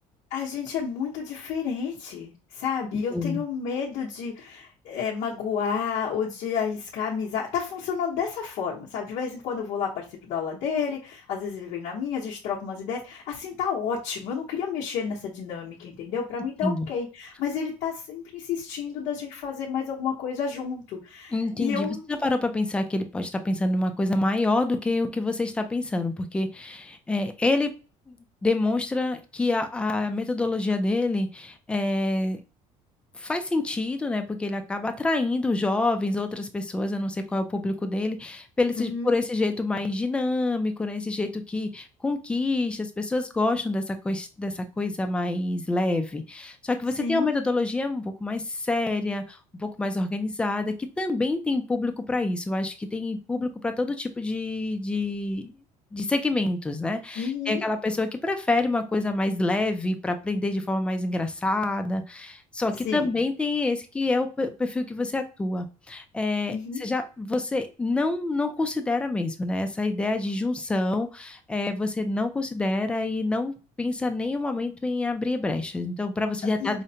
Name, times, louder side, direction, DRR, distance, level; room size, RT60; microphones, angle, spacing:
voice 1, 0.3-22.0 38.8-39.1 47.0-47.3 57.1-57.6 62.8-63.1 66.5-66.8 76.6-76.8, left 6 dB, 60° left, -5 dB, 0.9 m, -30 dB
voice 2, 3.1-3.4 16.6-16.9 21.3-27.7 28.1-28.2 28.4-32.4 33.1-55.5 55.9-76.8, left 2 dB, 10° left, 7 dB, 0.3 m, -27 dB
5.0 x 2.1 x 2.7 m, 0.33 s
cardioid pair, 175°, 13 cm